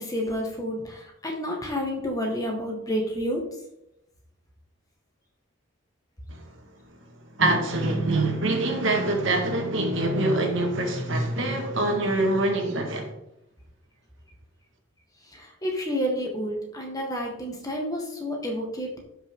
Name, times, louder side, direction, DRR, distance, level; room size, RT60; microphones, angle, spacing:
voice 1, 0.0-3.4 15.2-19.0, equal, 15° left, 1 dB, 1.8 m, -30 dB
voice 2, 7.3-13.1, right 2 dB, 65° right, 2 dB, 1.9 m, -24 dB
12.0 x 5.8 x 3.8 m, 0.83 s
head